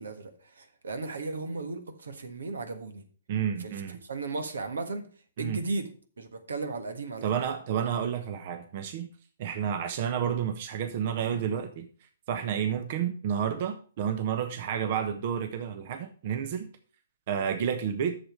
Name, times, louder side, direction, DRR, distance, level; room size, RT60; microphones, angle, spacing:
voice 1, 0.0-3.0 3.6-5.1 5.4-5.9 6.2-7.2, right 3 dB, 80° right, 1.4 m, -35 dB
voice 2, 3.3-4.0 5.4-5.6 7.2-9.1 9.4-11.9 12.3-16.7 17.3-18.2, right 8 dB, 50° right, 0.9 m, -30 dB
7.8 x 6.7 x 5.1 m
hypercardioid pair, 130°, 0 cm